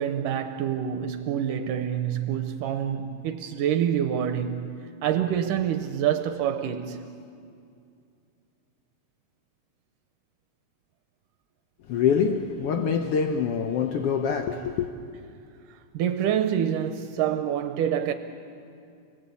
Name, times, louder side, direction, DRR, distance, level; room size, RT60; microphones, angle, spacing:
voice 1, 0.0-4.7 5.0-7.1 15.9-18.1, right 9 dB, 80° right, 2.4 m, -26 dB
voice 2, 11.9-14.9, left 6 dB, 75° left, 1.3 m, -25 dB
29.5 x 19.5 x 8.4 m
omnidirectional pair, 3.8 m